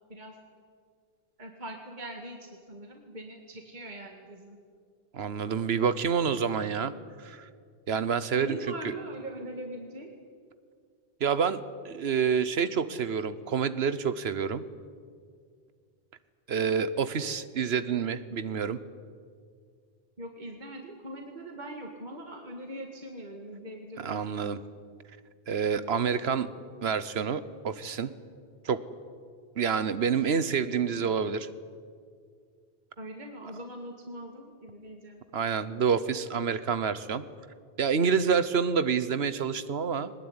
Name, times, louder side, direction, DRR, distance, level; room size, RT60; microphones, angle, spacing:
voice 1, 1.4-4.6 8.4-10.1 20.2-24.3 33.0-35.2, right 1 dB, 45° right, 2 dB, 2.1 m, -41 dB
voice 2, 5.1-6.9 7.2-7.5 7.9-8.6 8.8-8.9 11.2-14.6 16.5-18.8 24.0-24.6 25.5-26.5 26.8-28.1 28.6-28.8 29.6-31.5 35.3-37.2 37.8-40.1, right 6 dB, 80° right, 14 dB, 1.3 m, -28 dB
21.5 x 19.5 x 9.7 m, 2.1 s
omnidirectional pair, 1.0 m